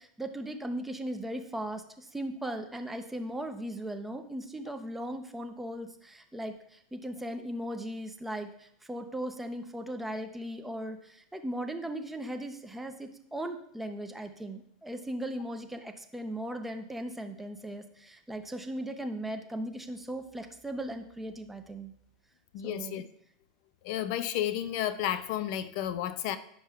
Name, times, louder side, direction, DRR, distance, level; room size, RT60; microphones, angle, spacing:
voice 1, 0.0-21.9 22.6-23.0, right 1 dB, 5° right, 6 dB, 0.6 m, -38 dB
voice 2, 22.5-23.0 23.8-26.4, left 11 dB, 60° left, 12 dB, 0.4 m, -32 dB
9.2 x 5.4 x 2.4 m, 0.70 s
supercardioid pair, 130°, 3 cm